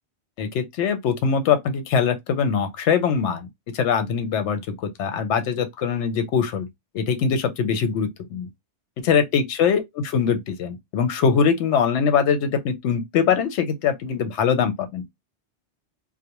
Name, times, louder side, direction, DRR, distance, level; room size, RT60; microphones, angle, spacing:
voice 1, 0.4-3.5 3.7-6.7 6.9-8.5 9.0-9.8 10.1-15.0, left 6 dB, 85° left, 0.9 m, -22 dB
2.4 x 2.1 x 2.8 m
omnidirectional pair, 1.2 m